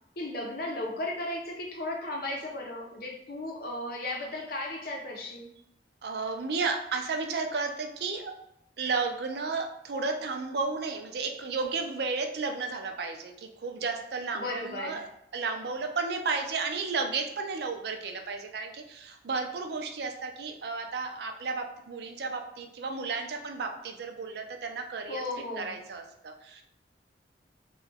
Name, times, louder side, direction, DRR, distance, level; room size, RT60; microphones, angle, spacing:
voice 1, 0.2-5.5 14.3-15.0 25.1-25.8, left 2 dB, 55° left, 0 dB, 0.7 m, -35 dB
voice 2, 6.0-8.3 8.8-15.0 15.3-25.2 25.6-26.6, right 4 dB, 60° right, 4 dB, 0.5 m, -33 dB
2.9 x 2.3 x 3.4 m, 0.81 s
head